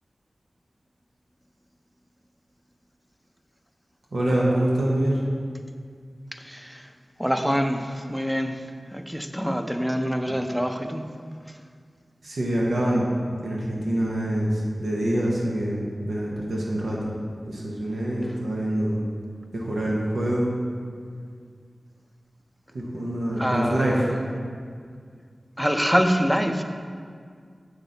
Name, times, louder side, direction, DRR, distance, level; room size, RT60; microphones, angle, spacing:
voice 1, 4.1-5.2 12.2-13.0 13.4-17.1 17.4-19.0 19.5-20.5 22.7-24.1, right 1 dB, 90° right, -4 dB, 1.1 m, -25 dB
voice 2, 6.4-6.9 7.2-8.6 8.9-11.0 23.4-24.1 25.6-26.6, equal, 5° right, 6 dB, 0.6 m, -25 dB
7.1 x 6.1 x 4.0 m, 2.1 s
wide cardioid pair, 50°, 0 cm